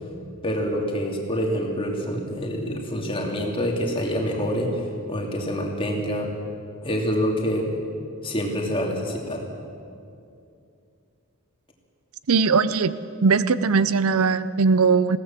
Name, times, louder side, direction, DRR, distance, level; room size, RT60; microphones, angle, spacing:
voice 1, 0.4-4.8 5.1-6.3 6.8-7.8 8.2-9.4, equal, 25° left, 0 dB, 2.8 m, -26 dB
voice 2, 12.3-12.9 13.2-15.2, right 5 dB, 75° right, 15 dB, 0.6 m, -19 dB
21.0 x 16.5 x 7.5 m, 2.5 s
head